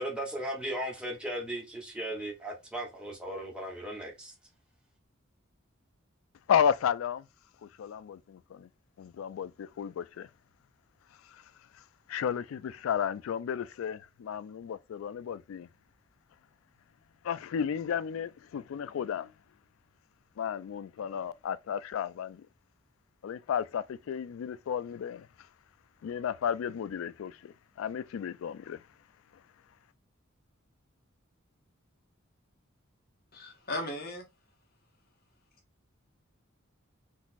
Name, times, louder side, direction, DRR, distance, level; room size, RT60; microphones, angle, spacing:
voice 1, 0.0-4.3, right 1 dB, 5° right, 1.0 m, -37 dB
voice 2, 6.5-7.2 7.6-8.7 9.0-10.3 12.1-15.7 17.2-19.3 20.4-22.4 23.2-25.3 26.0-28.8, left 8 dB, 80° left, 0.3 m, -33 dB
voice 3, 33.3-34.2, left 1 dB, 50° left, 1.0 m, -36 dB
3.9 x 2.4 x 2.5 m
head